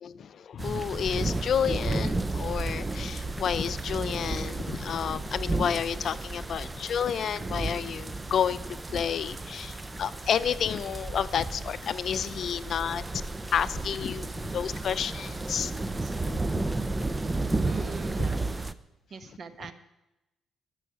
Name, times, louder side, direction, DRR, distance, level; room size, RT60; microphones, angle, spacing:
voice 1, 0.0-8.6 8.9-13.0 13.5-15.7 16.2-16.4 16.8-16.9 17.5-17.6, left 8 dB, 60° left, 15 dB, 0.6 m, -30 dB
sound 1, 0.6-18.7, right 2 dB, 20° right, 0.6 m, -33 dB
voice 2, 6.3-6.8 14.2-14.6 16.0-16.1 17.1-18.4 19.1-19.7, right 5 dB, 50° right, 10 dB, 1.3 m, -44 dB
14.0 x 6.5 x 9.7 m, 0.93 s
cardioid pair, 90°, 0 cm